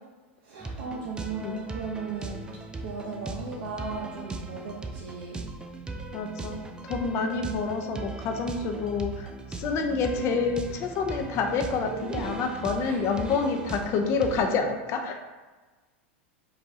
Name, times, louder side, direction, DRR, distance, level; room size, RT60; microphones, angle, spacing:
voice 1, 0.4-2.4 2.8-5.4 7.2-7.6 11.9-12.2 12.8-13.0, right 5 dB, 60° right, -3 dB, 0.8 m, -36 dB
sound 1, 0.6-14.5, right 3 dB, 15° right, 0.4 m, -38 dB
voice 2, 6.1-15.2, left 4 dB, 45° left, 5 dB, 0.6 m, -28 dB
4.7 x 2.5 x 4.1 m, 1.3 s
hypercardioid pair, 115°, 7 cm